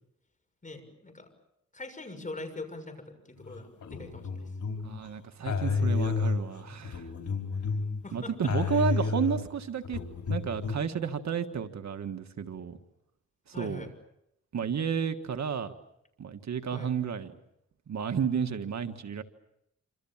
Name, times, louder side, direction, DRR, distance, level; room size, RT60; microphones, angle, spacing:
voice 1, 0.6-1.3 1.7-4.5 8.0-9.0 13.5-13.9 16.7-16.9, left 2 dB, 25° left, 6 dB, 6.7 m, -43 dB
sound 1, 3.5-5.0 5.4-8.0 8.4-10.8, left 4 dB, 85° left, 4.8 m, -30 dB
voice 2, 4.8-7.1 8.1-10.0 10.3-12.8 13.5-13.8 14.5-15.7 16.2-17.3 17.9-19.2, right 7 dB, 70° right, 7 dB, 1.7 m, -32 dB
27.5 x 27.0 x 7.4 m, 0.80 s
wide cardioid pair, 95°, 29 cm